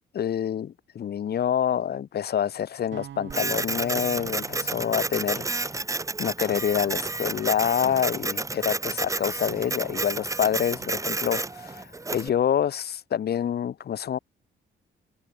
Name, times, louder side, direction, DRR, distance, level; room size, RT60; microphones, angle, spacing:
voice 1, 0.1-5.5 6.2-14.2, left 9 dB, 55° left, 1.4 m, -27 dB
sound 1, 2.9-7.1, right 10 dB, 65° right, 4.4 m, -46 dB
Printer, 3.3-12.3, right 3 dB, 15° right, 0.9 m, -31 dB
cardioid pair, 90°, 20 cm